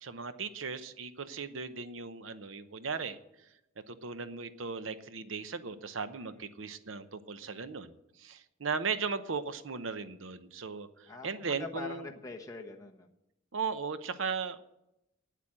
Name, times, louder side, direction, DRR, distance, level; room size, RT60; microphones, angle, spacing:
voice 1, 0.0-3.2 3.9-12.1 13.5-14.7, right 5 dB, 80° right, 12 dB, 0.8 m, -37 dB
voice 2, 11.1-13.1, left 3 dB, 15° left, 0 dB, 1.2 m, -44 dB
9.3 x 8.3 x 8.8 m, 0.89 s
head